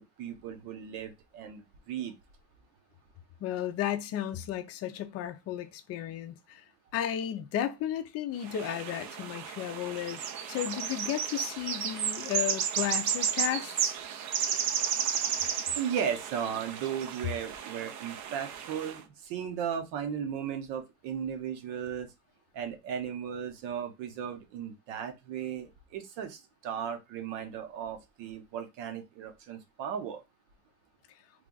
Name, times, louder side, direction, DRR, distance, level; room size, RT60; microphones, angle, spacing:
voice 1, 0.0-2.1 15.7-22.1 22.5-30.2, right 8 dB, 70° right, 1.1 m, -36 dB
voice 2, 3.4-6.6 6.9-13.9, left 11 dB, 30° left, 0.5 m, -34 dB
sound 1, 8.4-19.0, right 8 dB, 40° right, 0.5 m, -33 dB
3.3 x 2.4 x 3.9 m
cardioid pair, 135°, 48 cm